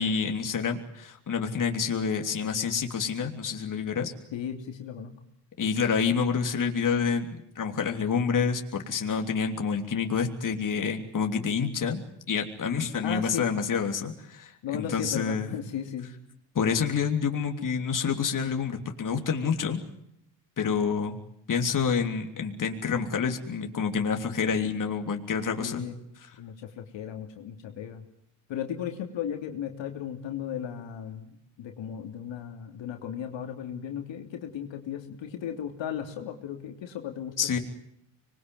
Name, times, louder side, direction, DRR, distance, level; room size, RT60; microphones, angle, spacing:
voice 1, 0.0-4.1 5.6-12.0 12.3-15.5 16.5-19.8 20.6-21.2 21.5-25.8 37.4-37.6, left 6 dB, 40° left, 4 dB, 3.3 m, -28 dB
voice 2, 4.3-5.1 13.0-13.5 14.6-16.1 25.6-26.0 26.4-28.0 28.5-37.6, left 9 dB, 65° left, 4 dB, 3.2 m, -36 dB
25.5 x 21.5 x 9.4 m, 0.73 s
supercardioid pair, 85°, 49 cm